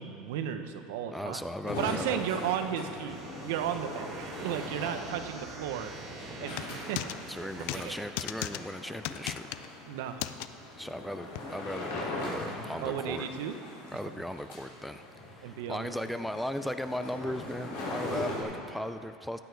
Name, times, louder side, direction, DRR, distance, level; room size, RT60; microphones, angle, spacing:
voice 1, 0.0-1.4 1.8-5.9 6.4-7.3 7.6-8.0 9.9-10.4 12.8-13.6 15.4-16.0, right 9 dB, 80° right, 8 dB, 0.8 m, -34 dB
voice 2, 1.1-2.5 4.8-5.0 7.3-9.5 10.8-13.3 13.9-19.4, equal, ahead, 10 dB, 0.4 m, -37 dB
sound 1, 1.6-18.4, left 2 dB, 90° left, 3.4 m, -41 dB
sound 2, 3.1-8.0, right 4 dB, 45° right, 1.3 m, -46 dB
sound 3, 6.5-7.2 7.7-7.9 8.2-8.6 9.0-9.7 10.2-10.5 11.4-11.5, left 15 dB, 70° left, 0.4 m, -35 dB
15.5 x 9.1 x 4.6 m, 2.6 s
supercardioid pair, 125°, 0 cm